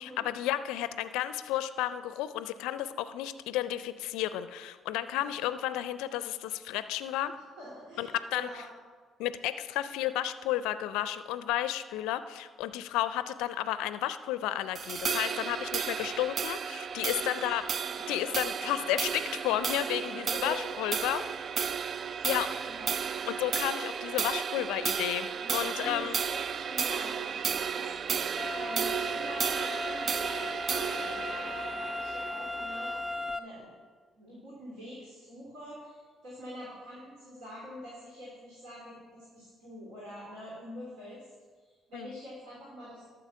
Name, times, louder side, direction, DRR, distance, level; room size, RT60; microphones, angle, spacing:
voice 1, 0.0-7.3 8.0-8.5 9.2-17.6 18.1-21.2 22.2-22.5 23.3-26.2 41.9-42.1, left 13 dB, 75° left, 13 dB, 0.4 m, -32 dB
voice 2, 7.6-8.6 15.9-16.1 17.1-17.3 17.8-18.3 20.3-20.7 22.2-23.0 25.4-27.9 28.5-33.0 33.3-33.7 34.2-41.2 41.6-43.1, equal, 75° right, -6 dB, 3.4 m, -45 dB
sound 1, 14.8-33.4, right 7 dB, 50° right, 0.3 m, -33 dB
sound 2, 28.4-33.4, left 2 dB, ahead, 1.1 m, -37 dB
12.0 x 6.9 x 5.8 m, 1.5 s
hypercardioid pair, 50°, 0 cm